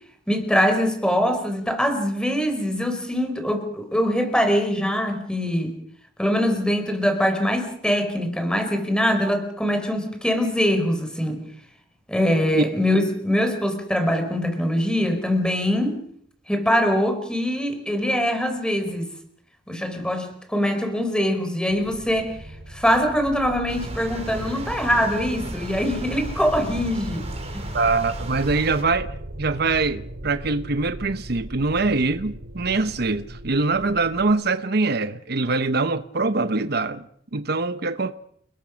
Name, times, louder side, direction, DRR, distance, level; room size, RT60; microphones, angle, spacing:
voice 1, 0.3-5.7 6.2-11.4 12.1-16.0 16.5-19.1 19.7-22.3 22.7-27.2 27.5-27.7, equal, 5° left, 4.6 m, -23 dB
sound 1, 21.7-34.3, equal, 85° right, 2.9 m, -37 dB
sound 2, 23.7-28.8, right 1 dB, 35° right, 4.8 m, -36 dB
voice 2, 27.7-37.1 37.3-38.1, right 3 dB, 60° right, 1.0 m, -23 dB
29.5 x 20.5 x 6.4 m
head